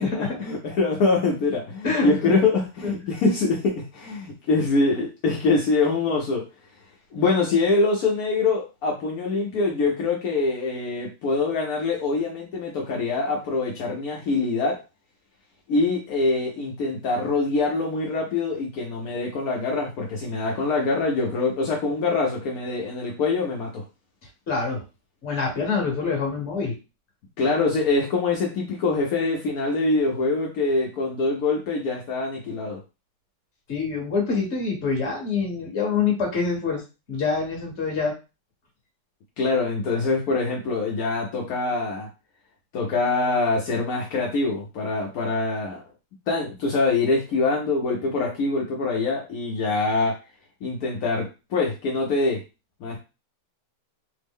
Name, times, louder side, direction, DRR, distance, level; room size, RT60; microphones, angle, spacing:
voice 1, 0.0-6.4 7.1-14.7 15.7-23.8 27.4-32.8 39.4-42.1 42.7-45.8 46.3-50.1 50.6-51.2 51.5-52.4 52.8-53.0, left 3 dB, 75° left, -1 dB, 0.8 m, -24 dB
voice 2, 1.8-2.4 2.8-2.9 24.5-24.8 25.2-26.7 33.7-36.8 37.1-38.1, left 5 dB, 40° left, 0 dB, 1.1 m, -25 dB
3.5 x 2.0 x 3.5 m, 0.29 s
omnidirectional pair, 2.4 m